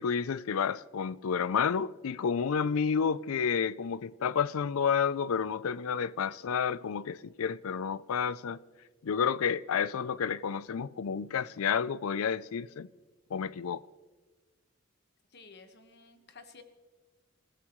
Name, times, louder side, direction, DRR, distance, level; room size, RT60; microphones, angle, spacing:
voice 1, 0.0-8.6 9.0-12.9 13.3-13.8, left 6 dB, 90° left, 0.4 m, -30 dB
voice 2, 15.3-16.6, left 4 dB, 50° left, 1.4 m, -53 dB
27.0 x 15.0 x 3.1 m
head